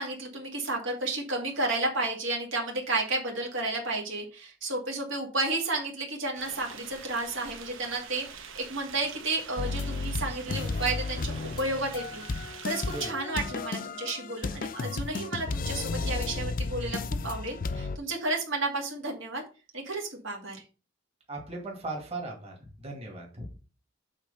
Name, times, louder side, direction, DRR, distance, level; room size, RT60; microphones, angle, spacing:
voice 1, 0.0-17.0 17.2-19.4 19.7-20.6, right 2 dB, 75° right, 0 dB, 2.1 m, -32 dB
sound 1, 6.3-13.1, right 6 dB, 90° right, 1.0 m, -46 dB
sound 2, 9.6-18.0, left 3 dB, 45° left, 0.5 m, -33 dB
voice 2, 21.3-22.5 22.8-23.5, right 2 dB, 30° right, 0 dB, 2.1 m, -37 dB
8.0 x 3.8 x 5.4 m, 0.33 s
head